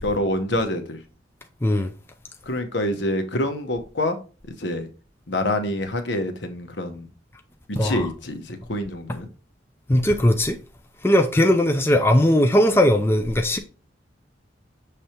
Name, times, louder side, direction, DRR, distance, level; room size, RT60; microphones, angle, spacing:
voice 1, 0.0-1.0 2.5-4.2 4.6-4.9 5.3-7.1 7.8-9.3, left 1 dB, 75° left, 1.1 m, -26 dB
voice 2, 7.8-8.1 9.9-10.6 11.0-13.6, left 1 dB, 15° left, 0.4 m, -19 dB
6.9 x 3.4 x 4.4 m
head